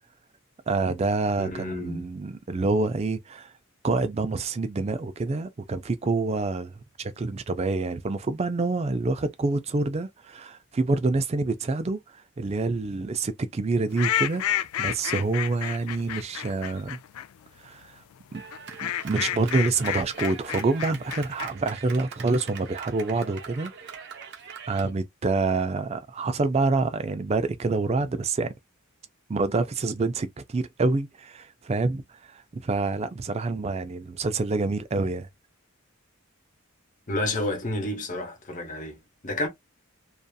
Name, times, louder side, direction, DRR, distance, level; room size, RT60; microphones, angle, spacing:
voice 1, 0.7-3.5 3.8-12.0 12.4-17.0 17.6-18.0 18.3-18.4 18.8-23.7 24.7-28.5 29.3-35.3, right 3 dB, 30° right, 0.3 m, -27 dB
voice 2, 1.4-2.1 37.1-39.5, left 1 dB, 35° left, 0.9 m, -30 dB
sound 1, 14.0-17.3 18.5-21.5, left 11 dB, 80° left, 0.3 m, -30 dB
Clapping, 18.3-24.9, right 6 dB, 50° right, 0.7 m, -43 dB
2.6 x 2.4 x 2.3 m
head